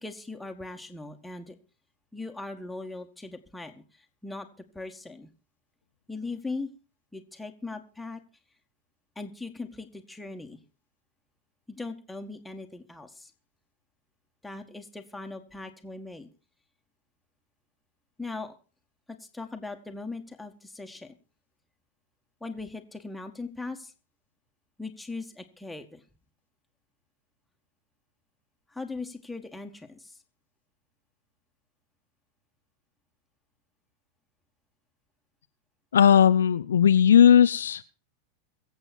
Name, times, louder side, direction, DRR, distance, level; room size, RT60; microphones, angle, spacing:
voice 1, 0.0-1.6 2.1-4.5 4.7-5.3 6.1-6.7 7.1-8.2 9.2-10.6 11.7-13.3 14.4-16.3 18.2-18.5 19.1-21.2 22.4-23.9 24.8-26.0 28.7-30.2, left 3 dB, 5° left, 4 dB, 1.9 m, -39 dB
voice 2, 35.9-37.8, left 8 dB, 65° left, 12 dB, 0.6 m, -17 dB
23.5 x 8.1 x 4.5 m, 0.36 s
figure-of-eight pair, 90°, 0 cm